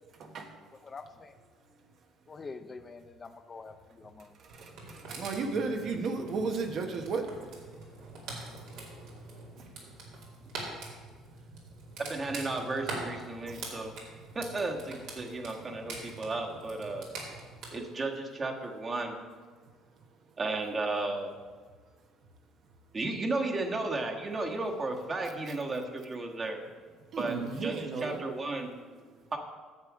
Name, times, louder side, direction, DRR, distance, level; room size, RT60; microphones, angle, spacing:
voice 1, 0.2-0.6 4.4-7.5 8.0-8.1 9.6-9.7 13.5-13.6 27.1-28.2, right 4 dB, 60° right, 4 dB, 1.1 m, -34 dB
voice 2, 0.8-1.4 2.3-4.3 7.7-7.8, left 4 dB, 30° left, 9 dB, 0.5 m, -46 dB
sound 1, 4.5-17.7, right 3 dB, 80° right, 2.3 m, -44 dB
voice 3, 12.0-13.9 14.3-17.1 17.7-19.1 20.4-21.3 22.9-26.6 27.2-27.4 27.6-28.7 29.3-29.4, right 2 dB, 30° right, 2 dB, 1.4 m, -34 dB
9.7 x 6.9 x 4.9 m, 1.5 s
supercardioid pair, 85°, 0 cm